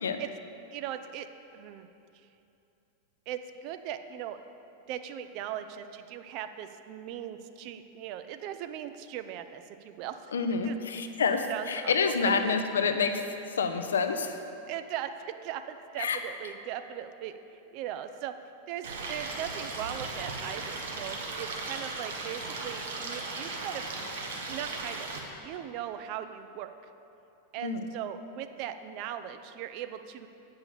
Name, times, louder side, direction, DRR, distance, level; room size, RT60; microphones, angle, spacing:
voice 1, 0.7-1.3 1.5-1.9 3.3-4.4 4.9-10.3 10.6-10.8 11.5-11.9 12.2-12.6 14.7-17.4 17.7-18.3 18.7-24.1 24.5-25.1 25.4-26.7 27.5-30.3, right 10 dB, 45° right, 9 dB, 0.4 m, -39 dB
voice 2, 10.3-13.2 13.5-14.4 16.0-16.2 27.6-27.9, left 5 dB, 65° left, 8 dB, 0.6 m, -28 dB
Stream, 18.8-25.2, right 3 dB, 60° right, 1.1 m, -37 dB
8.1 x 5.6 x 7.0 m, 2.8 s
figure-of-eight pair, 90°, 0 cm